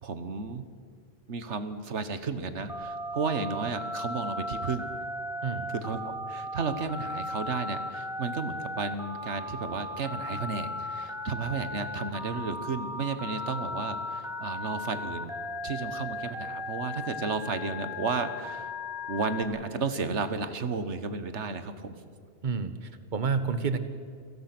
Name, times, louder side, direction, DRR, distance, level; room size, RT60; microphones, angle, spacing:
voice 1, 0.0-0.7 1.3-4.9 5.7-15.3 15.6-18.7 19.1-22.0, right 4 dB, 85° right, 11 dB, 1.6 m, -33 dB
Telephone, 2.7-19.4, left 1 dB, 5° right, 2.5 m, -36 dB
voice 2, 22.4-23.8, right 5 dB, 45° right, 11 dB, 1.3 m, -29 dB
29.5 x 17.5 x 6.1 m, 2.2 s
omnidirectional pair, 1.2 m